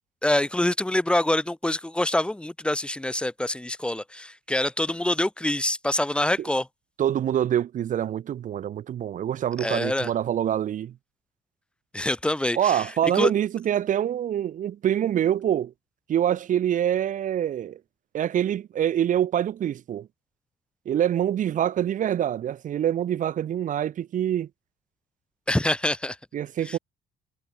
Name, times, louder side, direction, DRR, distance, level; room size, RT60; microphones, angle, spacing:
voice 1, 0.2-6.7 9.6-10.1 11.9-13.3 25.5-26.2 26.6-26.8, left 1 dB, 5° left, 1.9 m, -25 dB
voice 2, 7.0-10.9 12.6-15.7 16.1-17.8 18.1-20.1 20.9-24.5 26.3-26.8, right 10 dB, 50° right, 0.9 m, -25 dB
cardioid pair, 110°, 17 cm